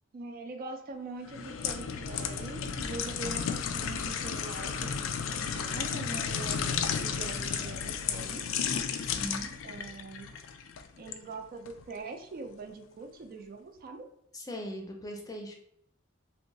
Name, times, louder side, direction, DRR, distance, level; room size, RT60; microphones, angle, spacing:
voice 1, 0.1-8.4 9.6-10.3 11.0-14.1, right 3 dB, 50° right, 6 dB, 0.3 m, -43 dB
sound 1, 1.3-11.2 11.7-11.8, left 7 dB, 85° left, 0.3 m, -33 dB
voice 2, 9.0-9.5 14.3-15.5, equal, 20° left, 2 dB, 0.5 m, -39 dB
2.7 x 2.3 x 3.9 m, 0.73 s
head